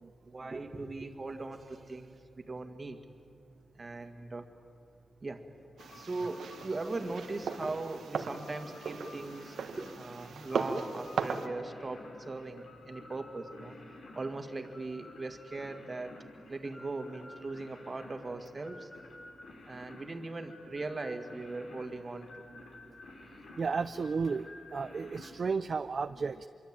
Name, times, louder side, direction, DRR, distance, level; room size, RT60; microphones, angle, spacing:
voice 1, 0.2-3.0 3.7-4.5 5.2-5.4 5.9-13.8 14.2-16.2 16.5-18.9 19.7-22.5, right 3 dB, 35° right, 7 dB, 2.1 m, -39 dB
sound 1, 5.8-25.3, left 2 dB, 80° left, 5.0 m, -52 dB
boots walking over Stave, 5.8-11.5, right 5 dB, 90° right, 1.5 m, -38 dB
voice 2, 23.6-26.5, right 5 dB, 50° right, 10 dB, 0.6 m, -33 dB
25.0 x 23.5 x 9.1 m, 2.5 s
wide cardioid pair, 100°, 0 cm